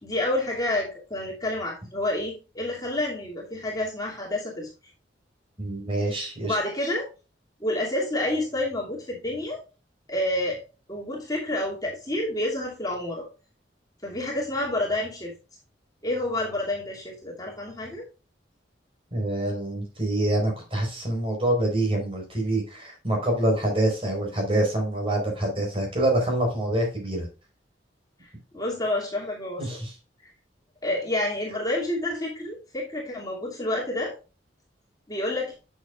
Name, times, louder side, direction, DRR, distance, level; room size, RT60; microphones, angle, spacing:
voice 1, 0.0-4.7 6.1-7.1 7.6-9.6 10.1-10.6 10.9-13.3 14.0-15.3 16.0-18.1 28.2-29.8 30.8-34.1 35.1-35.5, left 1 dB, 20° left, -3 dB, 2.6 m, -29 dB
voice 2, 5.6-6.6 19.1-27.3 29.6-29.9, right 1 dB, 30° right, 2 dB, 4.6 m, -26 dB
10.0 x 6.8 x 2.4 m, 0.32 s
head